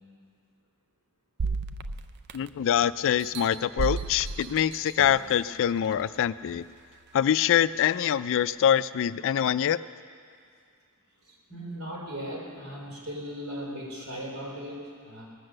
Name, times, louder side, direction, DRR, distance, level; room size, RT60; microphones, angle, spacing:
sound 1, 1.4-2.7 3.2-5.3 5.9-6.0, right 4 dB, 50° right, 0.4 m, -33 dB
voice 1, 2.3-6.6 7.1-9.8, left 9 dB, 60° left, 16 dB, 0.3 m, -24 dB
voice 2, 11.2-15.2, equal, 75° right, -4 dB, 4.2 m, -38 dB
19.5 x 7.9 x 6.5 m, 2.3 s
head